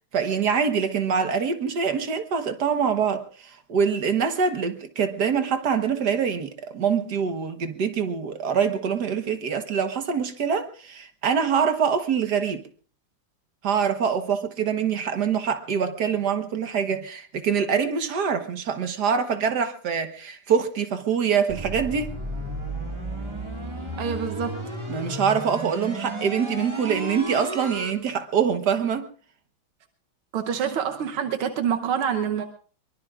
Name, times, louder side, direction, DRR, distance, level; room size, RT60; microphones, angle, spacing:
voice 1, 0.1-12.6 13.6-22.1 24.9-29.0, right 6 dB, 55° right, 1.7 m, -24 dB
sound 1, 21.5-27.9, right 1 dB, 15° right, 1.8 m, -33 dB
voice 2, 24.0-24.7 30.3-32.4, right 8 dB, 85° right, 1.9 m, -26 dB
23.5 x 23.0 x 2.5 m
omnidirectional pair, 2.3 m